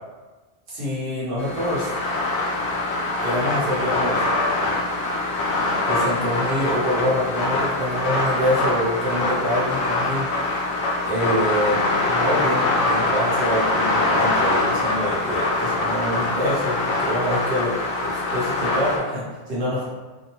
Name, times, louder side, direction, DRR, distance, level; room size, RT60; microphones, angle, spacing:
voice 1, 0.7-1.9 3.2-4.2 5.9-10.3 11.0-17.7 18.0-19.8, equal, 55° right, -8 dB, 1.1 m, -25 dB
sound 1, 1.4-19.0, left 2 dB, 80° left, 0.9 m, -23 dB
2.6 x 2.3 x 2.9 m, 1.2 s
omnidirectional pair, 1.1 m